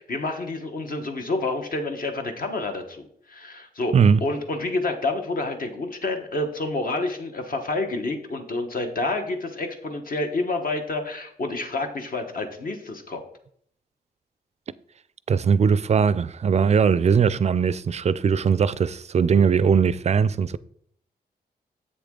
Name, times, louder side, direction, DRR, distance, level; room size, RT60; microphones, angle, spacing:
voice 1, 0.0-3.9 4.2-13.2, left 2 dB, 55° left, 1.3 m, -28 dB
voice 2, 3.9-4.2 15.3-20.6, right 6 dB, 40° right, 0.4 m, -20 dB
7.8 x 6.8 x 3.8 m
cardioid pair, 85°, 17 cm